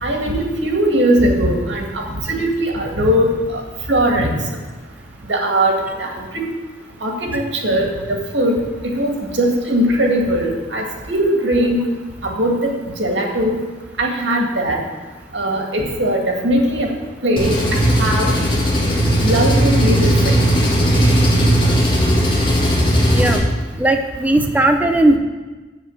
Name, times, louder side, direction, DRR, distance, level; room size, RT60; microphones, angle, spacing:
voice 1, 0.0-3.6 3.9-4.3 5.3-6.3 7.0-8.6 8.9-11.8 12.2-12.7 13.0-13.6 14.0-14.8 15.3-16.9 17.2-18.3 19.2-20.4, right 1 dB, 90° right, 1 dB, 2.0 m, -19 dB
Engine, 17.4-23.4, equal, 30° left, 1.9 m, -16 dB
voice 2, 23.1-23.5 23.8-25.2, right 1 dB, 10° right, 5 dB, 0.5 m, -16 dB
7.4 x 7.2 x 7.2 m, 1.2 s
head